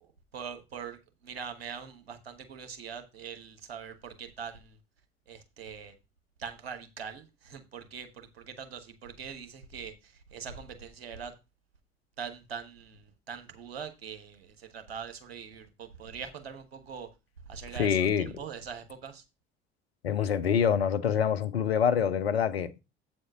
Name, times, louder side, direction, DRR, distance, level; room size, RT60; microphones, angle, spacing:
voice 1, 0.3-4.8 5.3-5.9 6.4-11.3 12.2-17.1 17.5-18.0 18.3-19.2, right 6 dB, 85° right, 1.2 m, -42 dB
voice 2, 17.7-18.3 20.0-22.7, left 8 dB, 90° left, 0.6 m, -26 dB
8.1 x 4.3 x 5.9 m
figure-of-eight pair, 55°, 30 cm